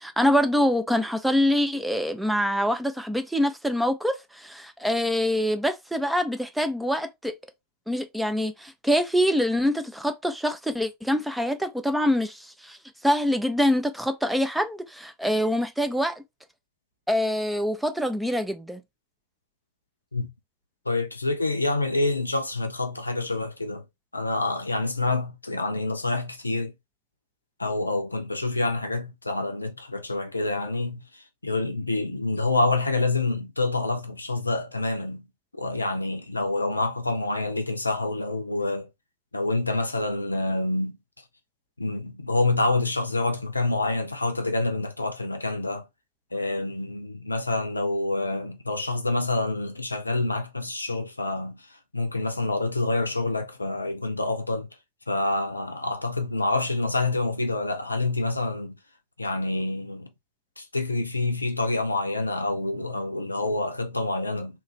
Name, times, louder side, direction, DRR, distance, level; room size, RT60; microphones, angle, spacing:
voice 1, 0.0-7.3 7.9-12.8 13.0-16.2 17.1-18.8, equal, 5° right, 0.5 m, -25 dB
voice 2, 20.9-23.8 24.1-26.7 27.6-35.3 35.5-38.9 39.3-41.0 41.8-45.9 46.3-51.7 51.9-54.7 55.1-58.8 59.2-60.1 60.6-64.6, left 2 dB, 80° left, 0.5 m, -27 dB
3.0 x 2.4 x 3.1 m
figure-of-eight pair, 90°, 0 cm